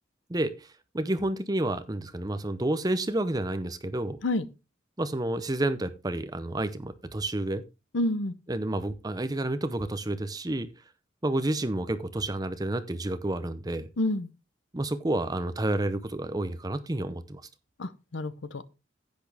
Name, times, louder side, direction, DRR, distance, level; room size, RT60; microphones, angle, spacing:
voice 1, 0.3-0.7 0.9-4.2 5.0-7.6 8.5-10.7 11.2-13.9 14.7-17.4, right 1 dB, 20° right, 0.7 m, -30 dB
voice 2, 7.9-8.3 14.0-14.3 17.8-18.6, left 1 dB, 70° left, 0.8 m, -28 dB
10.5 x 8.5 x 3.4 m
head